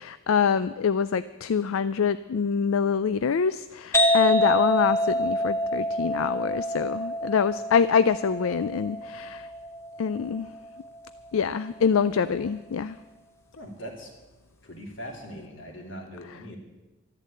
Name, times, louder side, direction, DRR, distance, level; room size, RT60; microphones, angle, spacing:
voice 1, 0.0-9.5 10.0-10.5 11.3-13.0, left 6 dB, 85° left, 14 dB, 0.4 m, -25 dB
sound 1, 3.9-11.4, equal, 15° left, 0.9 m, -27 dB
voice 2, 13.5-14.1 14.6-16.6, equal, 65° left, 2 dB, 2.9 m, -40 dB
13.0 x 10.5 x 8.6 m, 1.2 s
head